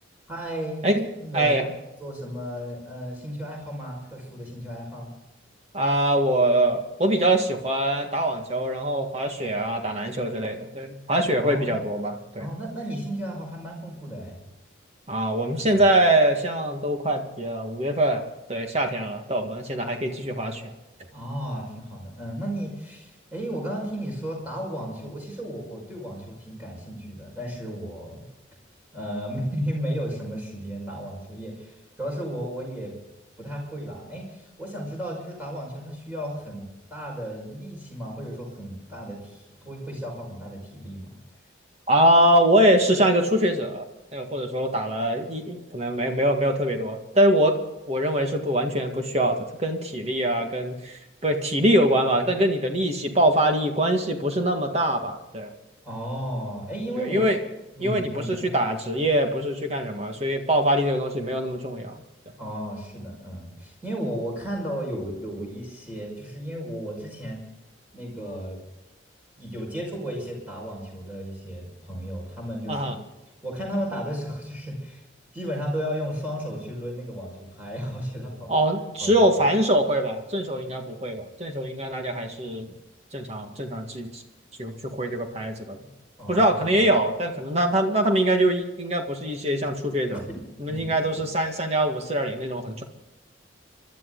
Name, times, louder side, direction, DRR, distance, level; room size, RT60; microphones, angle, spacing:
voice 1, 0.3-0.9 1.2-1.5 2.0-5.1 11.4-11.8 12.4-14.4 15.6-15.8 21.1-28.2 28.9-32.9 33.4-41.1 55.8-57.2 57.7-58.5 62.4-67.4 67.9-68.6 69.4-72.9 73.4-75.0 75.3-78.5 79.0-79.3 86.2-86.8 90.1-91.2, equal, 10° right, -2 dB, 5.5 m, -34 dB
voice 2, 1.3-1.7 5.7-12.5 15.1-18.2 18.5-20.6 41.9-43.9 44.1-47.6 47.9-55.5 57.0-57.4 57.8-62.0 72.7-73.0 78.5-82.7 83.1-84.2 84.6-85.8 86.3-90.2 90.6-92.8, right 1 dB, 35° right, 4 dB, 1.9 m, -23 dB
27.5 x 12.5 x 4.0 m, 1.0 s
head